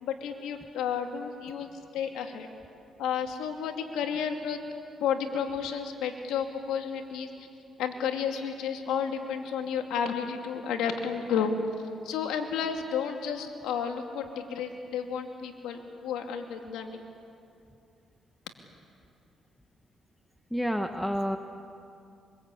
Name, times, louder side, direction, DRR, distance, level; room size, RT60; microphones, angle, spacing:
voice 1, 0.0-2.5 3.0-4.6 5.0-7.3 7.8-11.5 12.0-17.0, left 7 dB, 90° left, 4 dB, 2.7 m, -32 dB
voice 2, 20.5-21.4, equal, ahead, 6 dB, 1.2 m, -29 dB
25.5 x 25.0 x 8.7 m, 2.5 s
cardioid pair, 90°, 0 cm